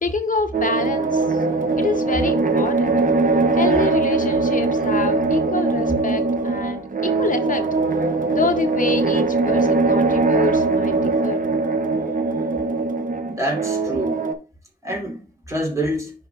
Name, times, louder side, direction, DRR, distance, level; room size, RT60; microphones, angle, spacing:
voice 1, 0.0-1.4 1.8-2.9 3.5-7.6 8.3-11.4, left 4 dB, 60° left, 0.7 m, -27 dB
sound 1, 0.5-14.3, right 3 dB, 60° right, 0.9 m, -21 dB
voice 2, 13.2-14.2 14.8-16.1, right 1 dB, 20° right, 3.1 m, -26 dB
11.0 x 4.0 x 2.3 m
wide cardioid pair, 80°, 16 cm